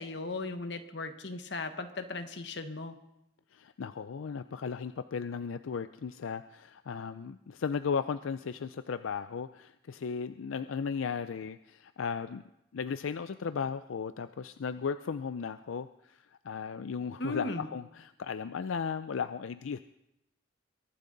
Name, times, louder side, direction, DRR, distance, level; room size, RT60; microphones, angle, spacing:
voice 1, 0.0-3.0 17.2-17.7, left 3 dB, 60° left, 8 dB, 1.3 m, -37 dB
voice 2, 3.5-12.4 12.7-19.8, left 6 dB, 85° left, 12 dB, 0.4 m, -36 dB
23.0 x 12.0 x 4.0 m, 0.86 s
head